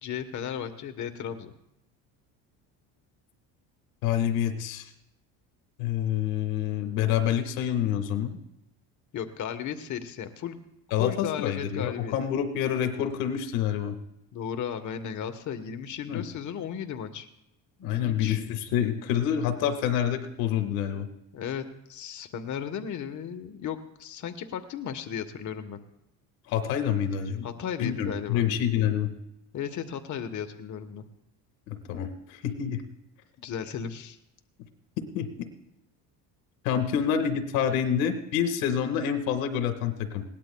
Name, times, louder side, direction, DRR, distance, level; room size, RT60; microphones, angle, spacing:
voice 1, 0.0-1.5 9.1-10.6 11.0-12.1 14.3-17.3 17.8-18.4 21.3-25.8 27.4-28.5 29.5-31.0 33.4-34.2, left 8 dB, 45° left, 8 dB, 1.2 m, -35 dB
voice 2, 4.0-4.9 5.8-8.4 10.9-14.0 16.1-16.3 17.8-21.1 26.5-27.5 27.8-29.1 31.7-32.8 35.2-35.3 36.6-40.2, left 9 dB, 90° left, 8 dB, 1.8 m, -27 dB
21.0 x 18.0 x 2.3 m, 0.82 s
supercardioid pair, 100°, 40 cm